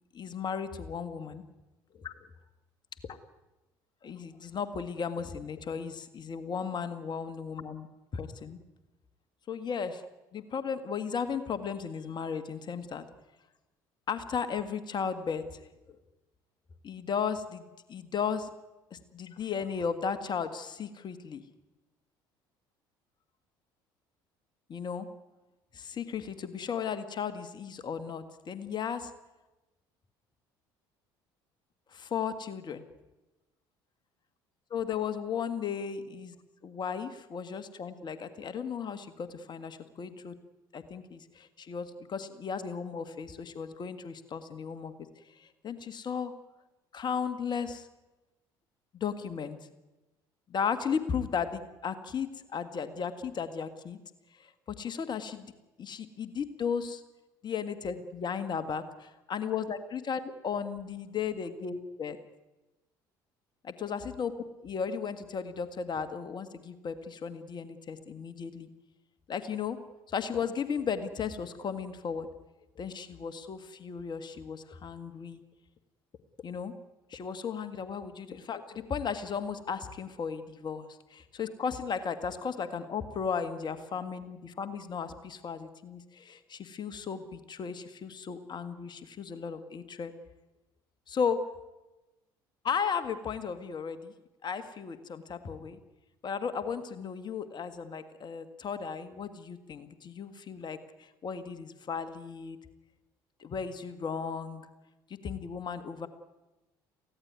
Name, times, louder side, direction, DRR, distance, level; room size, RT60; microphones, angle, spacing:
voice 1, 0.1-1.4 1.9-2.1 4.0-7.9 8.1-8.6 9.5-10.0 10.3-13.0 14.1-15.5 16.8-18.5 18.9-21.4 24.7-25.1 25.7-29.1 31.9-32.8 34.7-36.4 36.6-40.4 40.7-44.9 45.3-46.3 46.9-47.9 48.9-49.6 50.5-54.0 54.3-54.5 54.8-55.5 55.8-57.0 57.4-62.2 63.6-68.7 69.3-69.8 70.1-72.3 72.8-75.4 76.4-76.7 77.1-90.1 91.1-91.5 92.6-94.1 94.4-95.8 96.2-102.6 103.4-104.6 105.2-106.1, left 6 dB, 45° left, 11 dB, 1.7 m, -35 dB
23.0 x 16.5 x 9.6 m, 1.1 s
hypercardioid pair, 65°, 11 cm